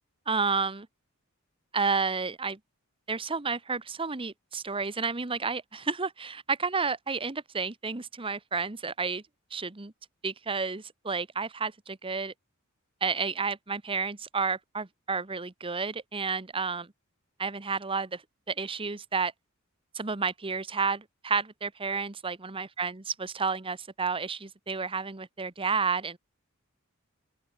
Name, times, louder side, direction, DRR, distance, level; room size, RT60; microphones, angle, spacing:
voice 1, 0.3-0.9 1.7-2.6 3.1-9.2 9.5-9.9 10.2-12.3 13.0-16.9 17.4-18.2 18.5-19.3 19.9-26.2, right 4 dB, 25° right, 1.0 m, -31 dB
open air
head